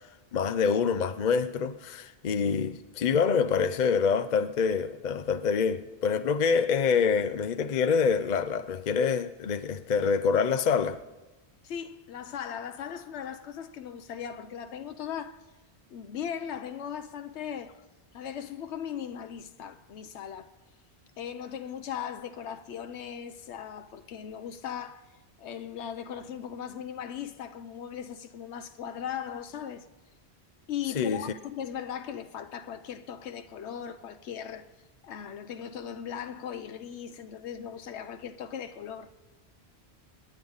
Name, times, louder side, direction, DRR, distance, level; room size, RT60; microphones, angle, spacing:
voice 1, 0.3-11.0 31.0-31.3, left 6 dB, 50° left, 0.7 m, -26 dB
voice 2, 11.6-15.4 15.9-17.7 18.1-20.5 21.2-25.0 25.4-29.9 30.7-34.7 35.0-39.1, left 8 dB, 85° left, 1.0 m, -38 dB
26.0 x 10.5 x 4.0 m
omnidirectional pair, 1.1 m